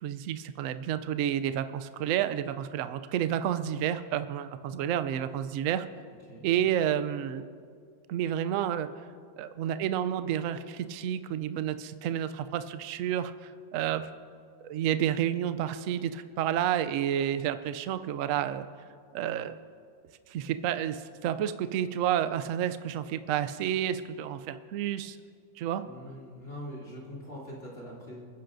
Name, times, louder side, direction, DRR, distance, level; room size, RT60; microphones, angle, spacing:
voice 1, 0.0-5.8 6.4-7.4 8.1-8.9 9.4-14.1 14.6-18.7 19.1-19.5 20.3-25.2 25.6-25.8, right 10 dB, 80° right, 11 dB, 0.7 m, -30 dB
voice 2, 25.8-28.3, equal, 35° left, -6 dB, 3.0 m, -43 dB
28.5 x 10.0 x 2.6 m, 2.2 s
omnidirectional pair, 2.0 m